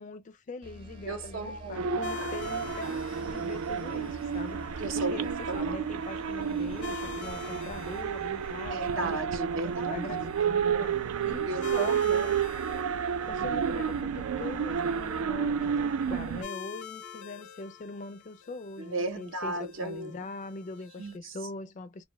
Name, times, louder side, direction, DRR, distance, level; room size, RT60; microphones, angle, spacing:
voice 1, 0.0-9.2 9.9-12.0 13.3-22.0, left 3 dB, 35° left, 0.3 m, -42 dB
sound 1, 0.6-10.0, left 1 dB, 25° right, 0.6 m, -48 dB
voice 2, 1.1-2.0 4.8-5.7 8.7-10.3 11.5-12.4 18.8-20.1 21.0-21.3, right 2 dB, 65° right, 0.7 m, -35 dB
sound 2, 1.7-16.4, right 7 dB, 85° right, 0.3 m, -31 dB
sound 3, 2.0-21.2, left 8 dB, 85° left, 0.7 m, -47 dB
2.6 x 2.2 x 2.9 m
head